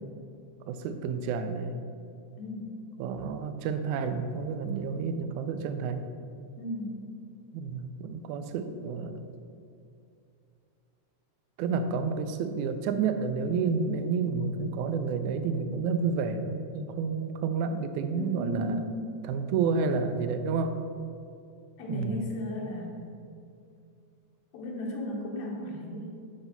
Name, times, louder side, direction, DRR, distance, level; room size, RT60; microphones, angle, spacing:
voice 1, 0.7-1.8 3.0-6.1 7.5-9.3 11.6-18.9 19.2-20.8 21.9-22.2, right 5 dB, 80° right, 9 dB, 1.9 m, -30 dB
voice 2, 2.4-2.8 6.6-7.0 18.1-19.1 21.8-23.1 24.5-26.1, equal, 70° left, -2 dB, 2.1 m, -35 dB
7.9 x 4.2 x 5.7 m, 2.5 s
omnidirectional pair, 3.4 m